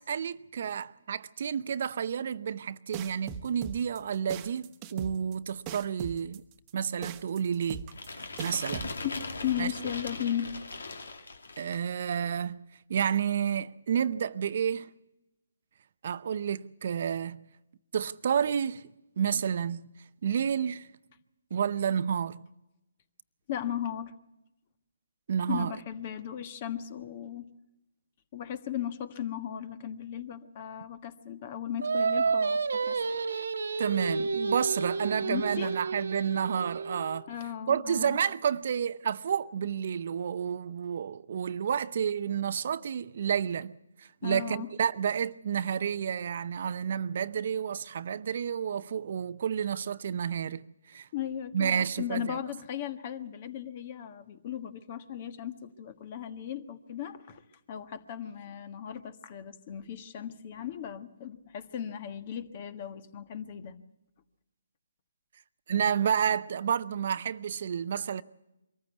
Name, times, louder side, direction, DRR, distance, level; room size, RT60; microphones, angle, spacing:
voice 1, 0.0-6.4 6.7-7.9 8.4-8.9 9.6-9.7 11.6-12.6 12.9-14.9 16.0-17.4 17.9-18.8 19.2-19.8 20.2-20.9 21.5-22.4 25.3-25.7 33.8-37.3 37.7-51.1 51.5-52.4 65.7-68.2, right 8 dB, 55° right, 0.6 m, -30 dB
sound 1, 2.9-8.9, right 9 dB, 25° right, 1.1 m, -40 dB
sound 2, 7.9-11.9, left 3 dB, 75° left, 2.4 m, -40 dB
voice 2, 9.0-10.5 23.5-24.1 25.5-27.5 28.3-33.0 35.2-35.7 37.3-38.2 44.2-44.7 51.1-57.4 57.7-63.8, left 10 dB, 40° left, 1.5 m, -36 dB
Singing, 31.8-37.2, right 4 dB, 70° right, 1.3 m, -30 dB
23.5 x 14.5 x 8.2 m
hypercardioid pair, 145°, 0 cm